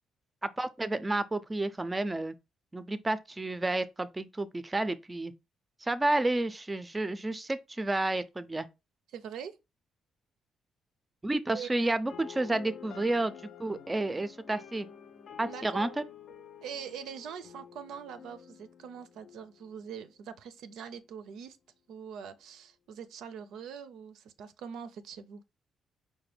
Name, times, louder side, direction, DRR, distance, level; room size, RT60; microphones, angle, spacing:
voice 1, 0.4-2.3 2.7-5.3 5.8-8.7 11.2-13.3 13.6-14.9 15.4-15.9, right 2 dB, 20° right, 0.4 m, -30 dB
voice 2, 9.1-9.6 11.5-12.0 15.4-16.0 16.6-21.6 21.9-25.4, right 7 dB, 80° right, 0.4 m, -43 dB
sound 1, 12.1-20.1, left 8 dB, 60° left, 0.4 m, -49 dB
4.8 x 2.1 x 3.3 m
cardioid pair, 90°, 0 cm